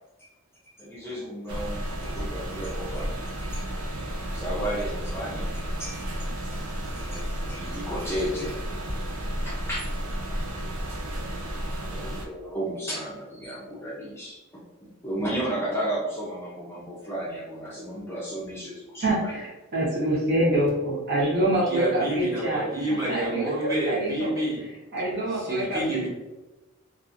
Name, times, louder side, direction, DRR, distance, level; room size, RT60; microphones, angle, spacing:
voice 1, 0.8-3.6 4.3-5.5 5.8-6.1 6.5-8.6 9.4-9.9 11.9-14.6 15.0-19.3, right 1 dB, 10° left, -7 dB, 0.5 m, -33 dB
sound 1, 1.5-12.3, right 1 dB, 70° right, 0.5 m, -32 dB
voice 2, 19.0-22.6 23.1-24.4 24.9-26.1, right 1 dB, 50° right, -6 dB, 1.0 m, -26 dB
voice 3, 21.7-24.6 25.3-26.1, right 1 dB, 15° right, -8 dB, 1.1 m, -29 dB
2.6 x 2.5 x 2.5 m, 1.1 s
head